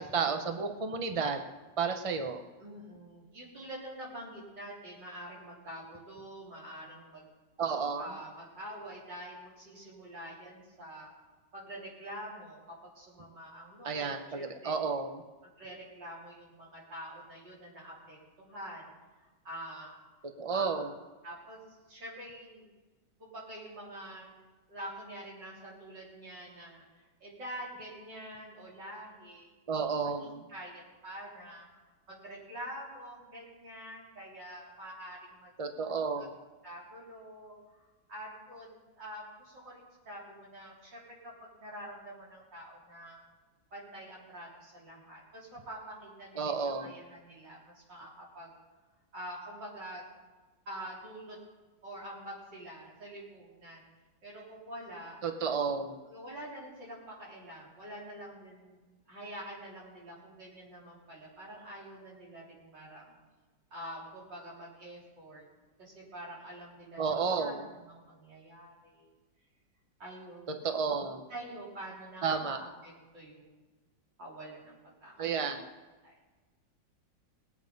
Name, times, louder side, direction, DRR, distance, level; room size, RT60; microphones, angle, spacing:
voice 1, 0.0-1.4 1.8-2.4 7.6-8.1 13.8-15.2 20.4-20.9 29.7-30.4 35.6-36.3 46.4-46.9 55.2-56.0 67.0-67.6 70.6-71.2 72.2-72.6 75.2-75.6, right 5 dB, 50° right, 6 dB, 0.4 m, -32 dB
voice 2, 2.6-7.2 8.0-11.1 11.5-14.7 15.6-18.9 19.4-20.0 20.5-20.9 21.2-21.6 21.9-22.7 23.2-24.3 24.7-31.7 32.1-35.5 36.2-36.3 36.6-41.3 41.6-43.2 43.7-48.5 49.1-50.0 50.7-51.4 51.8-53.8 54.2-55.2 56.0-63.2 63.7-65.5 65.8-69.1 70.0-70.6 71.3-73.5 74.2-74.7 75.0-75.7, right 1 dB, 70° right, -5 dB, 4.6 m, -46 dB
20.0 x 8.3 x 5.3 m, 1.2 s
omnidirectional pair, 2.0 m